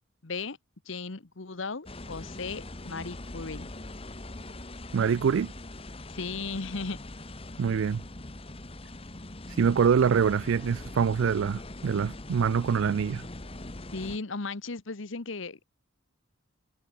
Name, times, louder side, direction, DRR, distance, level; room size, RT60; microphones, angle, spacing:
voice 1, 0.2-0.6 0.8-3.7 6.1-7.0 13.9-15.7, left 4 dB, 70° left, 1.1 m, -36 dB
sound 1, 1.9-14.2, left 2 dB, 30° left, 1.4 m, -42 dB
voice 2, 4.9-5.5 7.6-8.0 9.6-13.3, right 6 dB, 70° right, 0.4 m, -25 dB
head